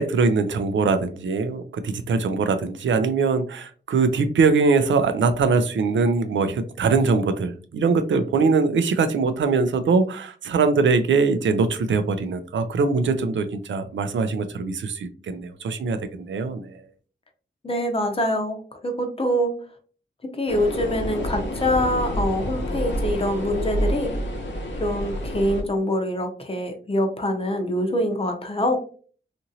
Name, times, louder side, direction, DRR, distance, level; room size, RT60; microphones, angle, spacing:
voice 1, 0.0-16.8, right 4 dB, 85° right, 9 dB, 0.4 m, -22 dB
voice 2, 17.6-19.5 20.4-24.1 24.8-28.8, equal, 30° left, 4 dB, 0.6 m, -24 dB
sound 1, 20.5-25.6, equal, 85° left, 0.7 m, -28 dB
2.9 x 2.5 x 2.6 m, 0.42 s
wide cardioid pair, 85°, 19 cm